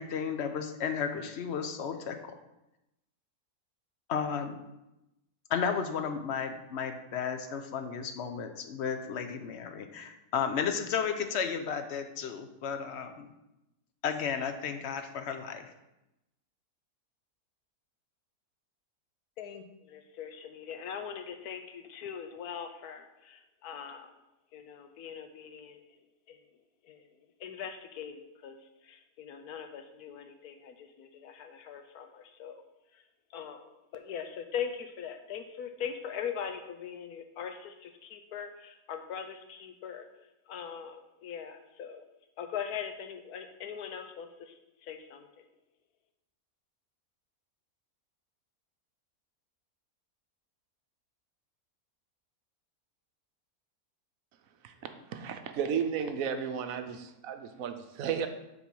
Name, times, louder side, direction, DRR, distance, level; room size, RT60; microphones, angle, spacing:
voice 1, 0.0-2.4 4.1-4.6 5.5-13.3 14.0-15.7, left 7 dB, 60° left, 7 dB, 0.8 m, -33 dB
voice 2, 19.4-24.1 24.5-26.0 26.3-26.4 26.8-27.1 27.4-28.6 28.8-32.6 32.9-33.0 33.3-40.1 40.5-42.0 42.4-45.6, left 8 dB, 75° left, 7 dB, 1.2 m, -41 dB
voice 3, 54.6-58.3, right 7 dB, 70° right, 7 dB, 1.0 m, -34 dB
7.3 x 4.1 x 5.3 m, 0.91 s
omnidirectional pair, 1.6 m